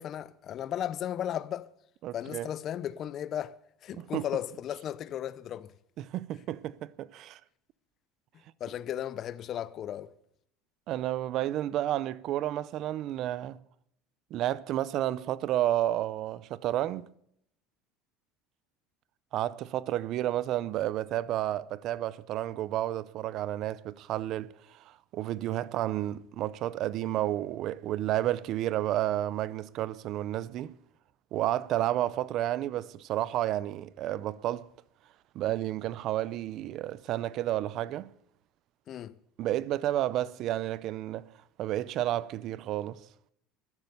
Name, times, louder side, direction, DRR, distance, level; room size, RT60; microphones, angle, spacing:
voice 1, 0.0-1.7 2.1-3.5 3.8-5.7 8.6-10.1 38.9-39.2, left 10 dB, 35° left, 0.5 m, -35 dB
voice 2, 2.0-2.5 4.0-4.3 6.0-7.4 10.9-13.6 14.3-17.1 19.3-30.7 31.3-34.7 35.3-38.1 39.4-41.3 41.6-43.0, right 13 dB, 45° right, 0.5 m, -31 dB
13.0 x 11.0 x 8.1 m
cardioid pair, 165°, 0 cm